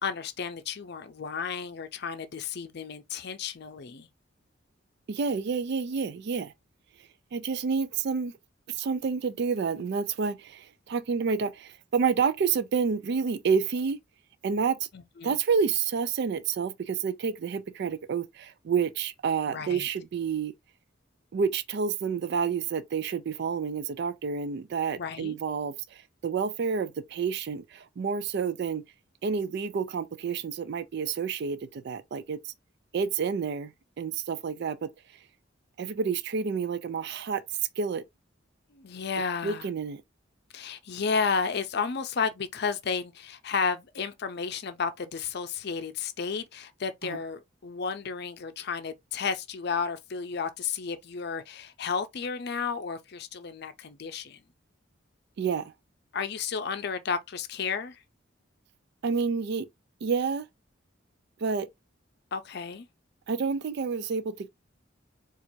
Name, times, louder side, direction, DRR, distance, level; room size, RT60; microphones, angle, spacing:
voice 1, 0.0-4.1 14.9-15.4 19.5-19.9 25.0-25.4 38.7-39.7 40.5-54.4 56.1-58.0 62.3-62.9, left 5 dB, 55° left, 0.5 m, -32 dB
voice 2, 5.1-6.5 7.3-8.3 8.7-14.0 14.4-14.9 15.2-20.5 21.3-28.8 29.2-32.5 32.9-34.9 35.8-37.4 37.8-38.0 39.4-40.0 47.0-47.2 55.4-55.7 59.0-59.7 60.0-60.5 61.4-61.7 63.3-64.5, right 6 dB, 60° right, 0.4 m, -29 dB
4.4 x 2.4 x 2.7 m
head